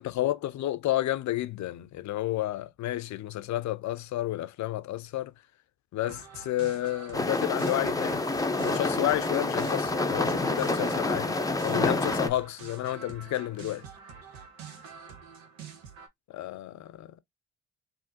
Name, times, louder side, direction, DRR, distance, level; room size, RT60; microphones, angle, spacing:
voice 1, 0.0-5.3 5.9-8.3 8.6-13.9 16.3-17.2, left 14 dB, 55° left, 0.5 m, -31 dB
sound 1, 6.0-16.1, right 6 dB, 80° right, 0.8 m, -47 dB
sound 2, 7.1-12.3, left 2 dB, 10° left, 0.6 m, -28 dB
3.6 x 2.6 x 2.5 m
hypercardioid pair, 45°, 34 cm